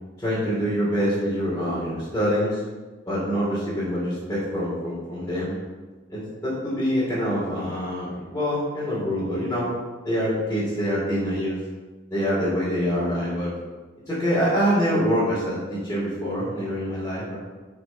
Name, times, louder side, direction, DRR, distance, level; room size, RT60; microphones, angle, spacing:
voice 1, 0.2-2.6 3.1-5.6 6.1-9.7 10.0-11.6 12.1-13.5 14.1-17.4, equal, 15° left, -10 dB, 3.6 m, -25 dB
10.0 x 6.0 x 6.2 m, 1.3 s
head